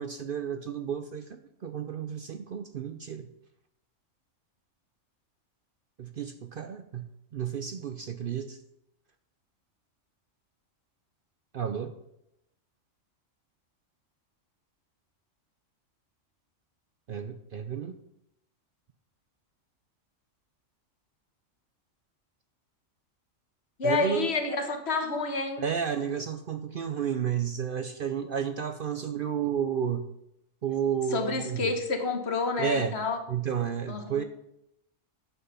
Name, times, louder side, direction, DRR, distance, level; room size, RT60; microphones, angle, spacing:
voice 1, 0.0-3.3 6.0-7.0 7.3-8.6 11.5-11.9 17.1-18.0 23.8-24.3 25.6-30.1 30.6-31.7 32.6-33.0 33.3-34.2, right 8 dB, 55° right, 8 dB, 0.6 m, -31 dB
voice 2, 23.8-25.6 31.1-33.2 33.9-34.2, left 4 dB, 55° left, 6 dB, 1.4 m, -29 dB
9.5 x 6.0 x 5.5 m, 0.81 s
omnidirectional pair, 1.3 m